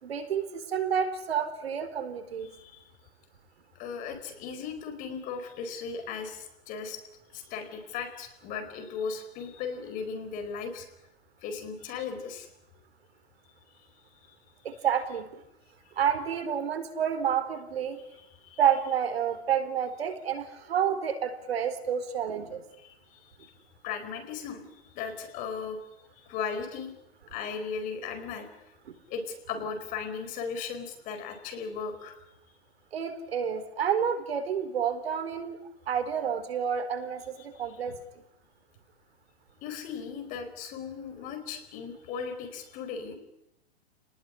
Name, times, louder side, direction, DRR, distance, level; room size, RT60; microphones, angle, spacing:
voice 1, 0.0-2.5 14.6-15.4 15.9-18.0 18.6-22.6 32.9-35.6 35.9-38.0, right 8 dB, 70° right, 9 dB, 4.5 m, -29 dB
voice 2, 2.4-2.8 3.7-7.0 7.3-10.9 11.4-12.5 13.7-13.8 18.0-18.6 22.8-25.8 26.1-26.9 27.3-28.7 29.1-32.2 39.6-43.2, left 6 dB, 25° left, 6 dB, 4.7 m, -37 dB
29.5 x 19.5 x 9.9 m, 0.84 s
hypercardioid pair, 160°, 31 cm